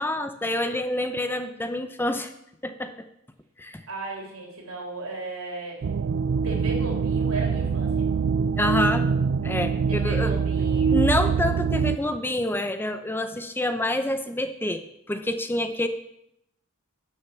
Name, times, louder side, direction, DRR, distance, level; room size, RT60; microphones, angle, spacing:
voice 1, 0.0-2.3 2.6-2.9 3.6-3.8 8.6-9.0 9.4-10.3 10.9-14.8 15.1-15.9, left 1 dB, 10° left, 8 dB, 0.6 m, -27 dB
voice 2, 3.9-5.9 6.2-8.1 9.9-11.1, right 2 dB, 80° right, 0 dB, 3.5 m, -36 dB
sound 1, 5.8-12.0, right 5 dB, 60° right, 0.4 m, -24 dB
11.5 x 6.5 x 7.2 m, 0.79 s
head